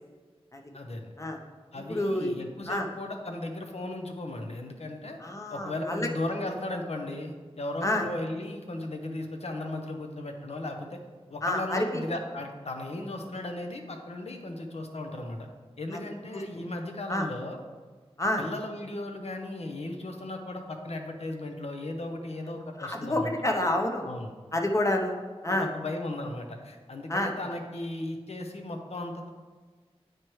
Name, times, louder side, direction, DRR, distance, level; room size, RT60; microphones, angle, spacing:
voice 1, 0.7-1.1 1.7-5.2 5.5-11.0 11.3-15.5 15.8-17.6 18.4-23.3 24.0-24.3 25.5-29.3, left 1 dB, 75° left, 4 dB, 0.8 m, -36 dB
voice 2, 1.9-2.3 2.7-2.9 5.2-6.1 7.8-8.0 11.4-12.0 17.1-17.3 18.2-18.5 22.8-24.0 24.5-25.1 25.4-25.7 27.1-27.3, left 1 dB, 30° left, 2 dB, 0.8 m, -28 dB
9.1 x 4.5 x 3.2 m, 1.4 s
wide cardioid pair, 70°, 11 cm